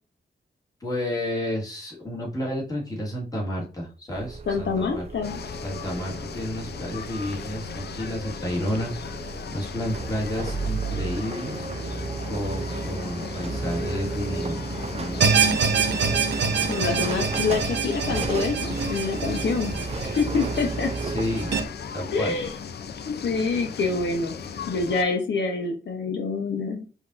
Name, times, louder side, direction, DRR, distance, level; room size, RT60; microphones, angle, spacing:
voice 1, 0.8-5.0 5.6-11.6 12.3-15.3 21.0-21.5 21.9-22.3, equal, 20° left, -3 dB, 1.7 m, -31 dB
sound 1, 4.1-21.7, right 4 dB, 35° right, 0.5 m, -33 dB
voice 2, 4.5-5.4 16.7-19.7 20.0-20.9 22.1-22.5 23.1-24.4 24.7-26.9, left 4 dB, 85° left, 3 dB, 1.0 m, -26 dB
sound 2, 5.2-25.0, left 6 dB, 65° left, 0.5 m, -37 dB
sound 3, 15.2-21.6, right 6 dB, 75° right, 0.7 m, -26 dB
5.1 x 2.9 x 2.5 m, 0.35 s
wide cardioid pair, 160°, 19 cm